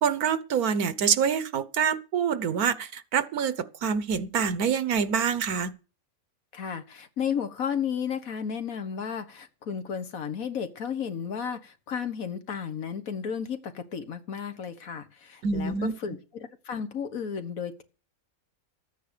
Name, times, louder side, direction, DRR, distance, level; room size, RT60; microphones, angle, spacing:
voice 1, 0.0-5.7 15.4-15.9, right 7 dB, 85° right, 1.5 m, -26 dB
voice 2, 6.5-17.8, left 7 dB, 70° left, 1.7 m, -33 dB
13.5 x 9.3 x 6.7 m
omnidirectional pair, 1.5 m